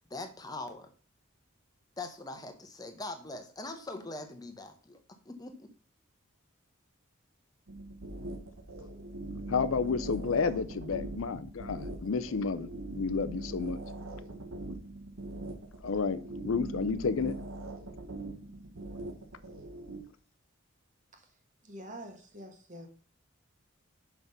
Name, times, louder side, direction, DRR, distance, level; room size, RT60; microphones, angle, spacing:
voice 1, 0.1-0.9 2.0-5.7, left 2 dB, 20° left, 1.0 m, -42 dB
sound 1, 7.7-20.0, right 1 dB, 80° right, 1.5 m, -42 dB
voice 2, 9.5-12.7 13.0-13.8 15.8-17.4, left 5 dB, 75° left, 0.5 m, -31 dB
voice 3, 21.6-22.9, right 1 dB, 35° right, 1.4 m, -46 dB
6.0 x 5.8 x 5.5 m
head